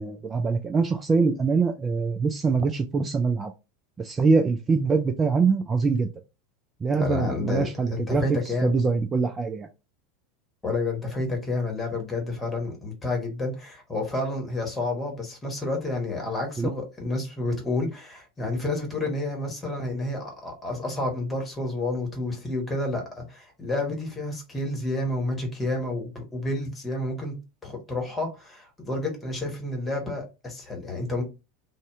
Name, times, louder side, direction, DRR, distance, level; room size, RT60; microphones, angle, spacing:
voice 1, 0.0-3.5 4.0-6.1 6.8-9.7 16.6-16.7, right 4 dB, 20° right, 0.3 m, -24 dB
voice 2, 7.0-8.7 10.6-27.3 27.6-31.2, left 2 dB, 15° left, 1.2 m, -30 dB
2.7 x 2.1 x 3.5 m
figure-of-eight pair, 80°, 0 cm